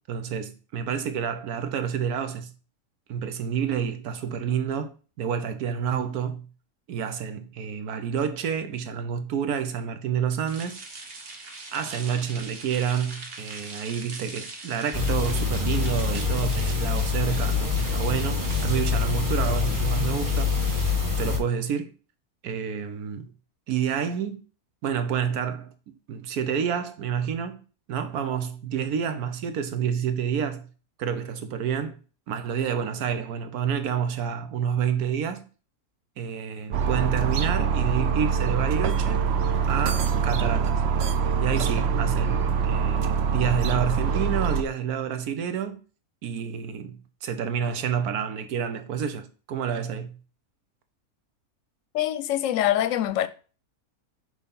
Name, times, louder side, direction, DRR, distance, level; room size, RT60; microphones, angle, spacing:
voice 1, 0.1-2.5 3.1-6.5 6.9-10.8 11.7-20.5 21.2-21.9 22.4-23.3 23.7-24.4 24.8-27.6 27.9-30.7 31.0-32.0 32.3-35.5 36.2-39.2 39.7-40.8 41.4-45.8 46.2-50.2, right 8 dB, 85° right, 1.3 m, -29 dB
sound 1, 10.5-20.9, right 3 dB, 45° right, 1.3 m, -42 dB
sound 2, 14.9-21.4, left 5 dB, 15° right, 1.1 m, -25 dB
sound 3, 36.7-44.6, right 6 dB, 60° right, 0.7 m, -24 dB
voice 2, 51.9-53.3, left 12 dB, 65° left, 0.9 m, -24 dB
6.1 x 3.5 x 5.4 m
omnidirectional pair, 1.6 m